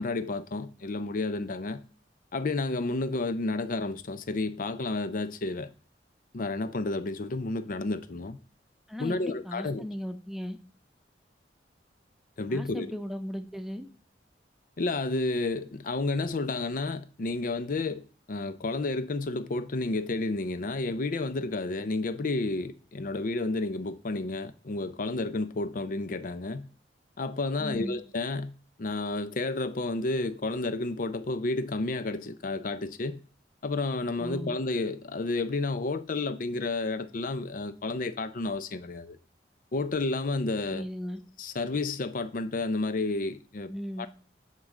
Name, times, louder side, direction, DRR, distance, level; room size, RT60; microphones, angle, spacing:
voice 1, 0.0-1.8 2.3-5.7 6.3-8.4 9.0-9.8 12.4-12.9 14.8-18.0 18.3-26.7 27.2-28.5 28.8-33.2 33.6-39.2 39.7-40.9 41.4-43.7 44.0-44.1, left 3 dB, 50° left, 0.5 m, -31 dB
voice 2, 8.9-10.6 12.5-13.9 27.6-28.0 34.2-34.6 40.7-41.2 43.7-44.1, equal, ahead, 0.8 m, -37 dB
9.5 x 3.8 x 7.2 m
head